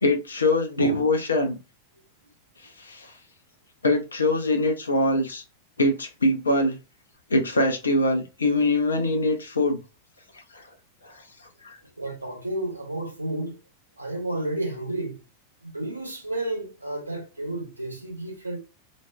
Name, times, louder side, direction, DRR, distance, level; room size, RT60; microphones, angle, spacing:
voice 1, 0.0-1.6 2.8-3.1 3.8-5.4 5.8-6.8 7.3-9.8 10.5-10.6 11.0-11.1 11.6-11.8, left 2 dB, 75° left, 0.6 m, -23 dB
voice 2, 0.8-1.1 12.0-13.6 14.0-15.2 15.6-18.6, right 1 dB, 85° right, 0.7 m, -31 dB
2.5 x 2.1 x 2.2 m
figure-of-eight pair, 90°, 0 cm